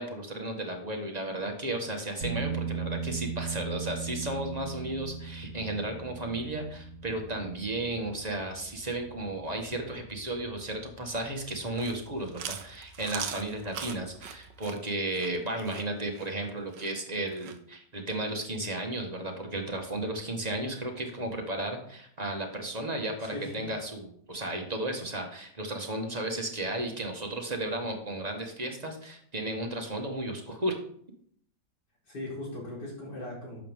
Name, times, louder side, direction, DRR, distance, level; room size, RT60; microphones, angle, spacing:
voice 1, 0.0-30.7, right 1 dB, 25° right, 3 dB, 1.6 m, -34 dB
sound 1, 2.2-14.5, right 5 dB, 65° right, 1.9 m, -40 dB
Chewing mastication, 11.6-17.6, right 8 dB, 85° right, 1.5 m, -41 dB
voice 2, 23.2-23.6 32.1-33.6, left 1 dB, 75° left, -5 dB, 4.9 m, -39 dB
11.5 x 7.5 x 3.7 m, 0.64 s
omnidirectional pair, 1.8 m